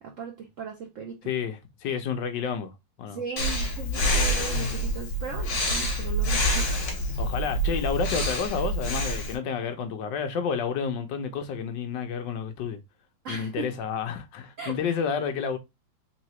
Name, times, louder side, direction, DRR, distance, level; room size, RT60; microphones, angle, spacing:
voice 1, 0.0-1.3 3.1-6.7 13.2-13.7 14.6-14.7, right 6 dB, 70° right, 0.7 m, -37 dB
voice 2, 1.2-2.7 3.0-3.2 7.2-12.8 13.3-15.6, left 6 dB, 70° left, 1.3 m, -30 dB
Breathing, 3.4-9.3, equal, 55° left, 1.7 m, -27 dB
3.7 x 3.4 x 3.0 m
omnidirectional pair, 2.1 m